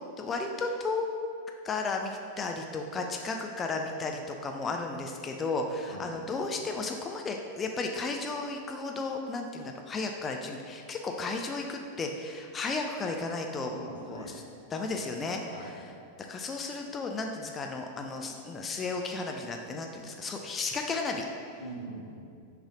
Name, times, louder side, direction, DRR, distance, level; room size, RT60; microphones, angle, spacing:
voice 1, 0.2-1.1 1.6-13.7 14.0-14.3 14.7-15.4 16.3-21.3, left 3 dB, 20° left, 3 dB, 0.4 m, -34 dB
voice 2, 13.7-14.4 14.9-15.0 15.4-15.8 21.6-22.1, right 1 dB, 85° left, -6 dB, 1.2 m, -42 dB
6.2 x 3.2 x 4.9 m, 2.4 s
figure-of-eight pair, 90°, 0 cm